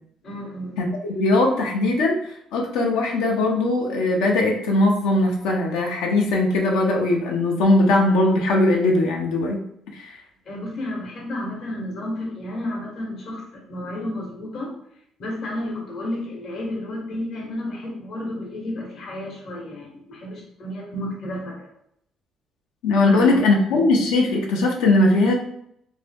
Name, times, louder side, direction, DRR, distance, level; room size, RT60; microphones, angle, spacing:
voice 1, 0.2-0.8 10.5-14.8 15.2-21.7 23.0-23.4, left 1 dB, 60° left, -2 dB, 0.8 m, -31 dB
voice 2, 0.8-2.2 2.5-9.6 9.9-10.2 22.8-25.3, left 2 dB, 85° left, 0 dB, 0.5 m, -20 dB
2.6 x 2.0 x 3.3 m, 0.72 s
supercardioid pair, 80°, 0 cm